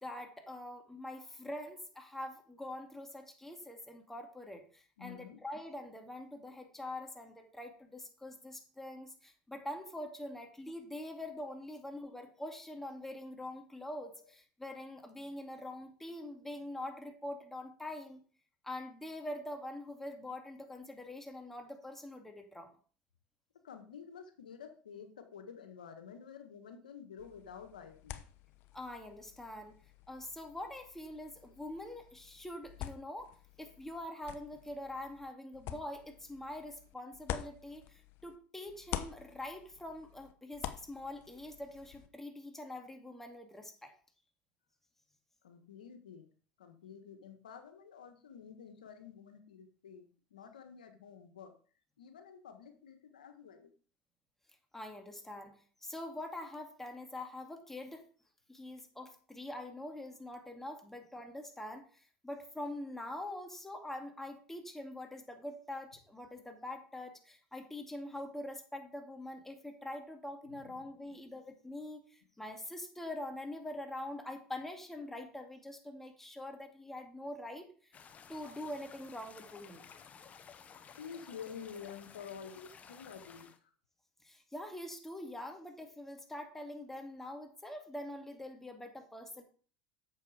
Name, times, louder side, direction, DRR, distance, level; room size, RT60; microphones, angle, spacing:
voice 1, 0.0-18.2 18.6-22.7 28.7-29.8 30.1-33.3 33.6-43.9 54.7-58.0 58.5-78.0 78.3-79.8 84.2-89.4, left 1 dB, 5° left, 4 dB, 2.3 m, -44 dB
voice 2, 5.0-5.4 23.6-28.2 45.4-46.3 46.6-51.6 52.0-53.7 70.5-71.2 81.0-83.5, left 7 dB, 90° left, 8 dB, 1.5 m, -50 dB
sound 1, 27.2-38.4 38.7-42.1, left 12 dB, 60° left, 0.9 m, -47 dB
sound 2, 77.9-83.6, left 7 dB, 35° left, 1.1 m, -55 dB
8.3 x 7.0 x 4.9 m, 0.42 s
hypercardioid pair, 85°, 4 cm